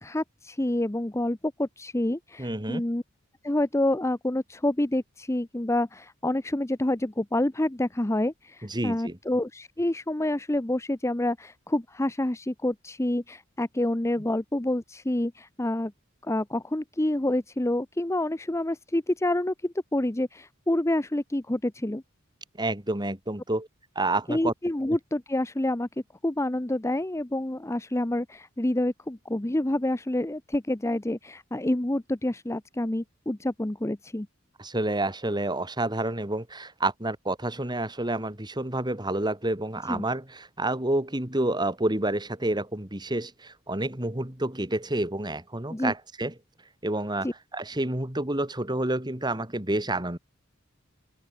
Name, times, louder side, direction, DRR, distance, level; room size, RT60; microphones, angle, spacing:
voice 1, 0.0-3.0 3.4-15.9 16.2-22.0 24.3-25.9 26.2-34.3 39.9-40.0 45.7-45.9 47.2-47.3, left 1 dB, 15° left, 0.7 m, -28 dB
voice 2, 2.4-2.8 8.7-9.2 22.6-23.7 23.9-24.5 24.9-25.0 34.6-46.3 46.8-50.2, right 2 dB, 20° right, 3.0 m, -29 dB
open air
head